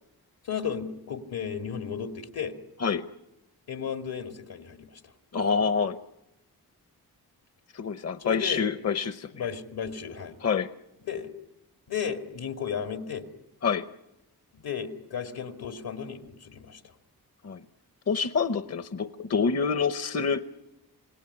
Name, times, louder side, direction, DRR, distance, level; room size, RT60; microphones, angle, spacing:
voice 1, 0.4-2.5 3.7-5.0 8.2-8.7 9.3-10.4 11.0-11.3 11.9-13.3 14.5-16.8, left 7 dB, 80° left, 5 dB, 2.2 m, -34 dB
voice 2, 5.3-6.0 7.7-9.5 10.4-10.7 13.6-13.9 17.4-17.6 18.1-20.4, left 5 dB, 45° left, 11 dB, 0.9 m, -27 dB
27.0 x 18.0 x 9.8 m, 0.94 s
cardioid pair, 85°, 37 cm